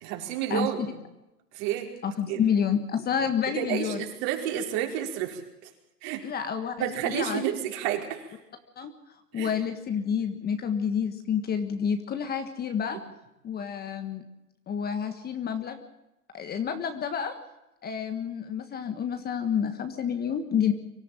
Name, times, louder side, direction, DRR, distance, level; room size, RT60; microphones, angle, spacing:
voice 1, 0.0-1.0 1.5-1.9 2.3-2.4 3.5-5.4 6.0-6.2 6.8-8.3 9.3-9.5, right 11 dB, 45° right, 2 dB, 4.8 m, -30 dB
voice 2, 2.0-4.0 6.2-7.4 8.8-8.9 9.3-13.0 13.4-14.2 14.7-15.8 16.3-17.3 17.8-20.7, left 7 dB, 20° left, 8 dB, 1.5 m, -29 dB
24.5 x 13.5 x 9.1 m, 0.93 s
hypercardioid pair, 130°, 46 cm